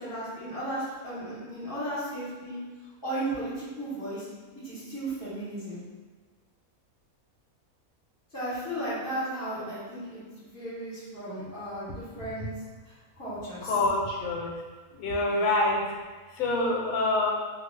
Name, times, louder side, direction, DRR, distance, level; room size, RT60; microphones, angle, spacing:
voice 1, 0.0-2.6 3.0-4.3 4.6-5.8 8.3-12.5 12.8-13.7 15.3-15.5, right 1 dB, 15° left, -11 dB, 0.8 m, -35 dB
voice 2, 13.6-14.5 15.0-15.8 16.4-17.3, left 2 dB, 75° left, -1 dB, 1.0 m, -26 dB
2.6 x 2.3 x 3.2 m, 1.4 s
omnidirectional pair, 1.6 m